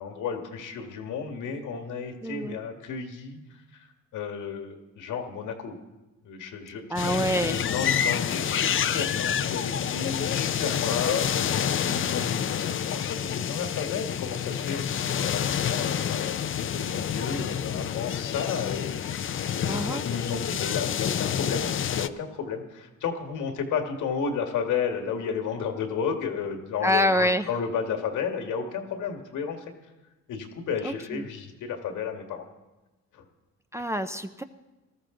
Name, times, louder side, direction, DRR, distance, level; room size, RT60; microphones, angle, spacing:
voice 1, 0.0-3.9 4.1-5.8 6.2-18.9 19.6-21.7 21.9-29.7 30.3-32.5 33.1-33.2, left 6 dB, 80° left, 4 dB, 1.9 m, -33 dB
voice 2, 2.2-2.6 6.9-7.6 19.6-20.0 26.8-27.5 30.8-31.3 33.7-34.4, equal, 10° right, 9 dB, 0.6 m, -26 dB
sound 1, 7.0-22.1, left 9 dB, 45° left, 0.6 m, -28 dB
19.0 x 13.5 x 3.9 m, 1.1 s
cardioid pair, 90°, 30 cm